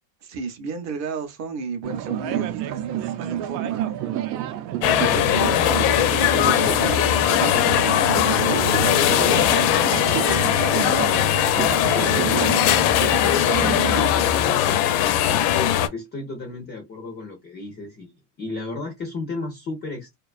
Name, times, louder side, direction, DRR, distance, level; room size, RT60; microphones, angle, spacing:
voice 1, 0.2-4.4 4.9-10.8 11.9-12.9, right 5 dB, 35° right, 0.5 m, -33 dB
sound 1, 1.8-14.1, right 12 dB, 85° right, 0.6 m, -29 dB
sound 2, 4.8-15.9, left 11 dB, 70° left, 0.5 m, -20 dB
voice 2, 10.7-11.1 11.9-12.3 13.9-18.1 18.4-20.1, left 3 dB, 25° left, 0.3 m, -34 dB
2.4 x 2.3 x 2.3 m
cardioid pair, 150°, 50 cm